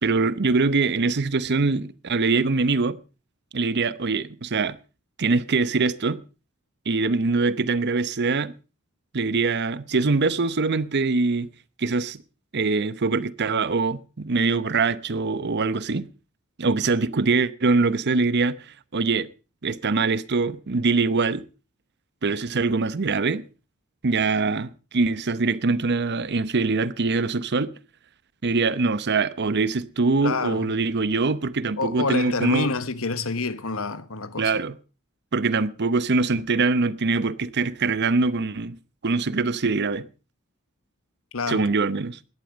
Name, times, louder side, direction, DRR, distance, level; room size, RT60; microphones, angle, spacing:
voice 1, 0.0-3.0 3.5-4.8 5.2-6.2 6.9-8.5 9.1-11.5 11.8-12.2 12.5-16.1 16.6-18.6 18.9-19.3 19.6-21.4 22.2-23.4 24.0-27.7 28.4-32.7 34.4-34.7 35.3-38.8 39.0-40.1 41.5-42.2, right 3 dB, 55° right, 0.8 m, -23 dB
voice 2, 30.2-30.7 31.8-34.5 41.3-41.7, left 3 dB, 70° left, 1.2 m, -27 dB
17.5 x 11.5 x 5.1 m
head